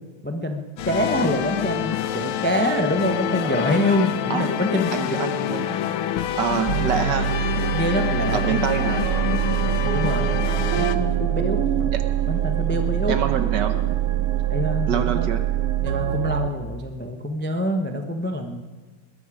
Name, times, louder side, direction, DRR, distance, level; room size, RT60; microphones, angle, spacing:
voice 1, 0.2-5.2 6.7-6.9 7.7-8.6 9.7-11.9 12.3-13.2 14.5-15.3 15.8-18.6, equal, 10° left, 5 dB, 0.4 m, -26 dB
sound 1, 0.8-11.0, left 10 dB, 75° left, 1.6 m, -27 dB
voice 2, 4.9-5.8 6.4-7.3 8.3-9.1 11.9-12.0 13.1-13.8 14.9-15.4, right 7 dB, 60° right, 8 dB, 1.4 m, -26 dB
sound 2, 6.7-16.5, right 11 dB, 90° right, 1.7 m, -24 dB
21.0 x 13.0 x 5.0 m, 1.3 s
omnidirectional pair, 2.3 m